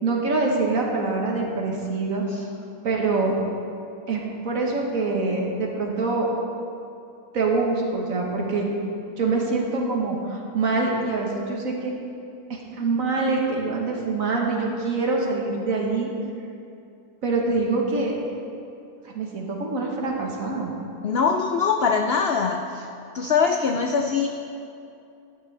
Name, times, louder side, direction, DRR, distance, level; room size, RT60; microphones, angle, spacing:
voice 1, 0.0-2.2 2.8-3.4 4.1-6.3 7.3-8.7 9.2-11.9 12.5-16.1 17.2-18.1 19.0-20.7, right 3 dB, 60° right, -1 dB, 1.7 m, -25 dB
voice 2, 21.0-22.9 23.1-24.3, left 5 dB, 75° left, 4 dB, 0.5 m, -22 dB
12.0 x 9.8 x 3.3 m, 2.6 s
omnidirectional pair, 1.7 m